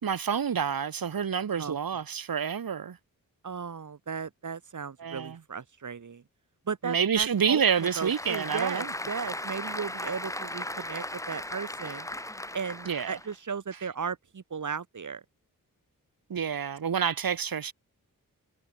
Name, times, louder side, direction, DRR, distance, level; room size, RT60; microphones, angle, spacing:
voice 1, 0.0-3.0 5.0-5.4 6.8-8.9 12.9-13.2 16.3-17.7, right 7 dB, 90° right, 4.3 m, -28 dB
voice 2, 3.4-6.2 6.7-12.1 12.5-15.2, right 6 dB, 60° right, 4.3 m, -36 dB
Applause / Crowd, 7.2-13.4, left 1 dB, 10° left, 4.5 m, -37 dB
wide cardioid pair, 155°, 34 cm